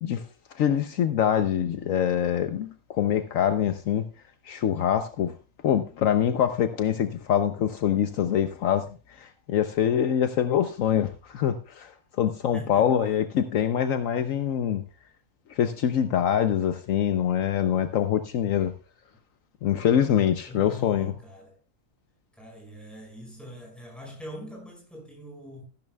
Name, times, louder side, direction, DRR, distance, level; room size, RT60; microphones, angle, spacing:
voice 1, 0.0-4.0 4.4-5.3 5.6-14.8 15.5-18.7 19.6-21.1, left 9 dB, 70° left, 1.1 m, -25 dB
voice 2, 12.5-13.0 20.5-21.6 22.3-25.6, left 1 dB, ahead, 5.5 m, -42 dB
14.0 x 12.0 x 2.2 m
omnidirectional pair, 1.5 m